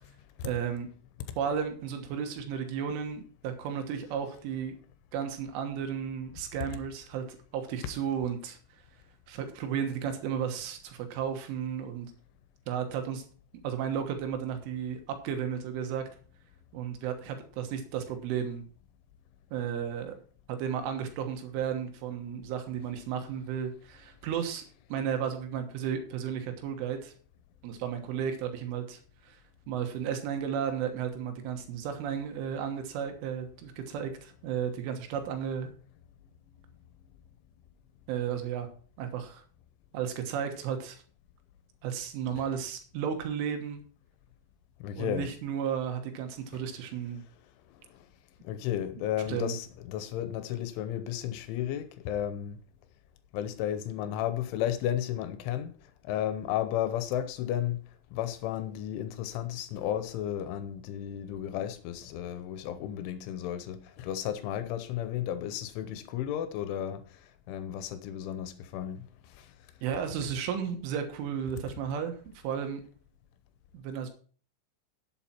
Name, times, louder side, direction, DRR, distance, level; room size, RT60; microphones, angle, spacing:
voice 1, 0.4-0.9 1.4-4.7 5.1-8.6 9.3-12.1 12.7-13.2 13.6-16.1 16.7-18.7 19.5-20.2 20.5-24.6 24.9-27.1 27.6-29.4 29.7-35.7 38.1-38.7 39.0-39.4 39.9-41.0 41.8-43.8 45.0-47.2 49.3-49.6 69.8-72.1 72.4-72.8 73.7-74.1, right 8 dB, 85° right, 3.8 m, -33 dB
voice 2, 44.8-45.3 46.5-46.6 47.9-48.0 48.4-52.6 53.3-55.7 56.0-57.8 58.1-67.0 67.5-69.0 69.3-69.5, left 11 dB, 85° left, 3.4 m, -33 dB
11.5 x 8.2 x 4.4 m
omnidirectional pair, 5.5 m